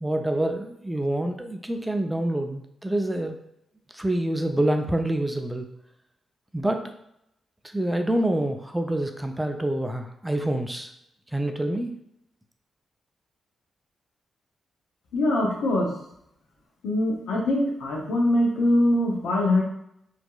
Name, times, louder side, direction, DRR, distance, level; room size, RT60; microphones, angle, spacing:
voice 1, 0.0-3.4 3.9-5.7 6.5-6.8 7.7-10.9 11.3-11.9, right 1 dB, 10° right, 5 dB, 0.3 m, -26 dB
voice 2, 15.1-15.9 16.8-19.6, left 1 dB, 80° left, -1 dB, 0.6 m, -23 dB
2.6 x 2.4 x 2.2 m, 0.77 s
supercardioid pair, 45°, 0 cm